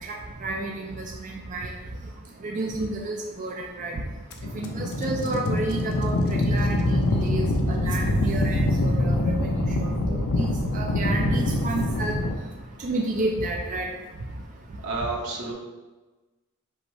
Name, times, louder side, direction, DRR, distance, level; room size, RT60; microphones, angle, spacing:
voice 1, 0.0-1.7 2.4-4.0 4.5-9.5 9.8-10.5 10.7-12.2 12.8-13.9, right 2 dB, 35° right, 0 dB, 0.4 m, -30 dB
sound 1, 4.3-12.4, left 1 dB, 80° left, 0.6 m, -24 dB
voice 2, 14.8-15.5, right 3 dB, 85° right, -2 dB, 1.0 m, -30 dB
5.3 x 2.1 x 4.7 m, 1.2 s
head